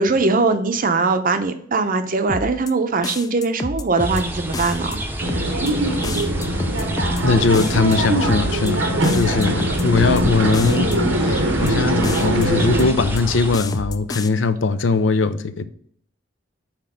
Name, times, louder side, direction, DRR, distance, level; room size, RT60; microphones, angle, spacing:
voice 1, 0.0-5.0, right 3 dB, 50° right, 0.6 m, -21 dB
sound 1, 2.3-2.7 3.0-4.2 4.5-5.0 5.3-5.7 6.0-7.2 7.5-8.0 8.3-8.7 9.0-10.2 10.5-11.0 11.3-11.7 12.0-13.2 13.5-14.3, left 3 dB, 20° left, 0.4 m, -29 dB
sound 2, 4.0-13.6, right 1 dB, 10° right, 0.7 m, -28 dB
sound 3, 5.2-12.9, right 1 dB, 85° right, 1.0 m, -22 dB
voice 2, 7.2-10.9 11.2-15.6, left 4 dB, 75° left, 0.5 m, -20 dB
5.9 x 4.3 x 5.0 m
head